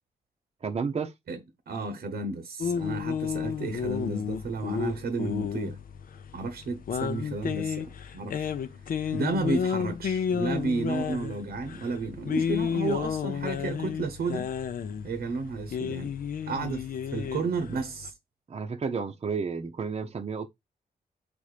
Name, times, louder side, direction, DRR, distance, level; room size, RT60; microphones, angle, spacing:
voice 1, 0.6-1.1 18.5-20.5, right 5 dB, 40° right, 0.7 m, -31 dB
voice 2, 1.7-5.8 6.3-8.5 9.1-14.5 15.0-16.1 16.5-18.1, right 3 dB, 90° right, 1.1 m, -32 dB
sound 1, 2.6-18.1, left 7 dB, 65° left, 0.6 m, -32 dB
5.1 x 4.2 x 5.0 m
wide cardioid pair, 110°, 16 cm